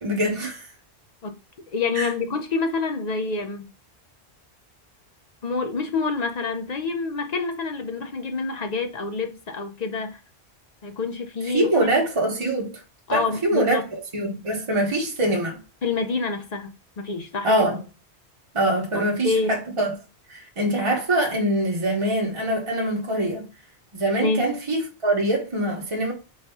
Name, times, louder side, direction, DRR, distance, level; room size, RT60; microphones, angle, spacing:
voice 1, 0.0-0.7 1.9-2.1 11.4-12.7 13.1-15.6 17.4-17.8 18.5-19.9 20.3-23.4 23.9-26.1, right 1 dB, 30° right, 1.0 m, -24 dB
voice 2, 1.7-3.7 5.4-10.2 10.8-11.9 13.1-13.8 15.8-17.5 18.9-19.6 24.2-24.4, left 4 dB, 50° left, 0.5 m, -27 dB
4.1 x 2.6 x 3.4 m
omnidirectional pair, 1.1 m